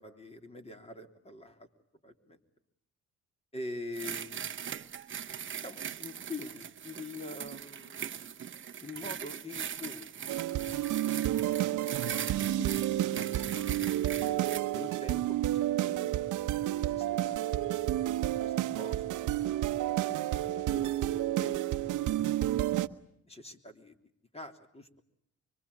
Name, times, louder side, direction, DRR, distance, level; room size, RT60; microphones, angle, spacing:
voice 1, 0.0-1.7 2.0-2.4 3.5-4.6 5.5-8.2 8.8-10.1 11.0-11.4 12.0-12.2 12.5-14.5 14.7-16.2 16.9-18.1 18.4-19.3 19.6-19.7 20.2-21.6 22.0-22.3 23.3-24.0 24.3-24.9, left 2 dB, 20° left, 6 dB, 3.3 m, -45 dB
sound 1, 3.9-14.6, right 8 dB, 40° right, 1.0 m, -40 dB
sound 2, 10.3-22.9, right 13 dB, 80° right, 1.0 m, -30 dB
25.0 x 24.5 x 8.5 m, 0.72 s
cardioid pair, 90°, 30 cm